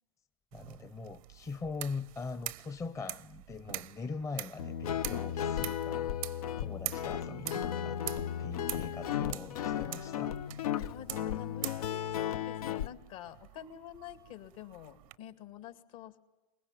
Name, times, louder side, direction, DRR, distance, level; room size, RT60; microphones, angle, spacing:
voice 1, 0.5-8.0 8.4-10.4, left 4 dB, 15° left, 0.7 m, -42 dB
sound 1, 0.5-15.2, right 18 dB, 70° right, 0.7 m, -45 dB
Guitar, 4.6-12.9, left 9 dB, 85° left, 0.8 m, -35 dB
voice 2, 8.6-9.2 10.9-16.2, left 10 dB, 65° left, 2.2 m, -48 dB
22.5 x 20.0 x 9.1 m
hypercardioid pair, 115°, 19 cm